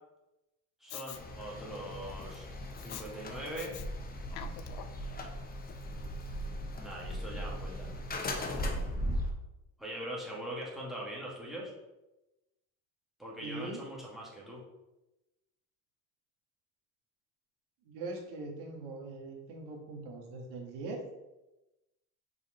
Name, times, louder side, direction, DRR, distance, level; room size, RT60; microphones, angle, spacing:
voice 1, 0.8-2.5 2.8-3.7 6.8-8.0 9.8-11.7 13.2-14.6, right 1 dB, ahead, -5 dB, 2.1 m, -41 dB
Respiratory sounds, 0.9-1.2 2.8-3.1 3.6-3.9 4.2-5.0 5.7-5.8, left 11 dB, 75° left, 0.7 m, -45 dB
sound 1, 1.1-9.3, equal, 25° left, 1.0 m, -38 dB
voice 2, 13.4-13.8 17.8-21.0, right 3 dB, 80° right, 0 dB, 1.7 m, -41 dB
5.5 x 4.6 x 4.4 m, 0.99 s
cardioid pair, 110°, 39 cm